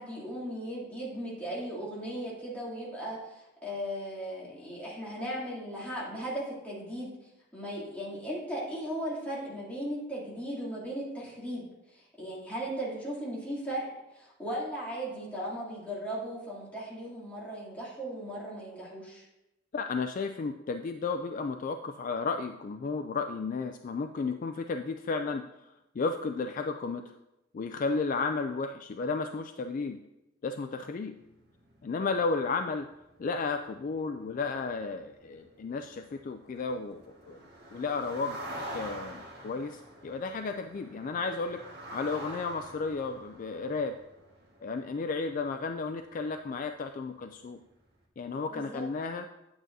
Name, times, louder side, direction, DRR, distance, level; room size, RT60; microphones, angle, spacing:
voice 1, 0.0-7.1 7.5-19.3 48.5-48.8, equal, 10° left, -7 dB, 2.7 m, -37 dB
voice 2, 19.7-25.4 26.0-27.1 27.5-30.0 30.4-31.1 31.8-32.9 33.2-37.4 37.7-38.4 38.7-41.6 41.9-44.0 44.6-47.6 48.2-49.3, left 4 dB, 40° left, 7 dB, 0.3 m, -33 dB
sound 1, 31.1-46.5 46.7-47.1 47.5-47.6, right 1 dB, 55° right, 1.7 m, -47 dB
9.0 x 8.7 x 2.7 m, 0.93 s
head